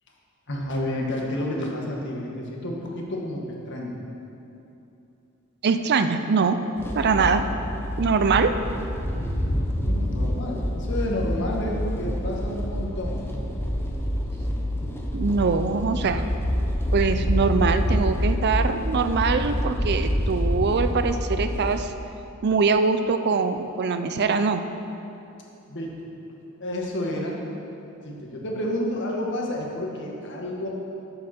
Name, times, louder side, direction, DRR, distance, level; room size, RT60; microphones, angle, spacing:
voice 1, 0.5-4.0 9.8-13.2 25.7-26.1 26.6-27.4 28.0-30.7, left 1 dB, 60° left, -2 dB, 1.7 m, -30 dB
voice 2, 5.6-6.6 6.9-7.4 8.0-8.5 15.1-16.3 16.9-21.9 22.4-24.6, right 4 dB, 50° right, 9 dB, 0.5 m, -23 dB
sound 1, 6.8-21.8, equal, 10° left, 0.9 m, -27 dB
12.5 x 7.8 x 4.4 m, 2.8 s
head